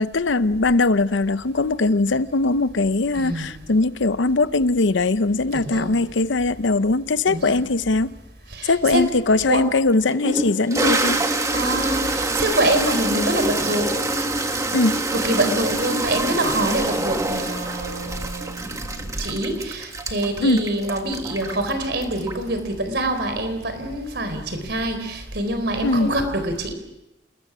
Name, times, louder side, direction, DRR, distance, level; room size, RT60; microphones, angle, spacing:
voice 1, 0.0-8.2 8.6-11.2 14.7-15.0 20.4-20.7 25.8-26.1, left 3 dB, 85° left, 0.8 m, -20 dB
voice 2, 3.2-3.6 5.5-5.9 7.3-7.6 8.5-9.0 9.4-9.6 11.5-14.0 15.1-26.7, right 1 dB, 60° right, 4.2 m, -25 dB
Toilet flush, 9.4-9.5 10.1-22.6, right 2 dB, 15° right, 1.5 m, -25 dB
28.5 x 21.0 x 6.2 m
head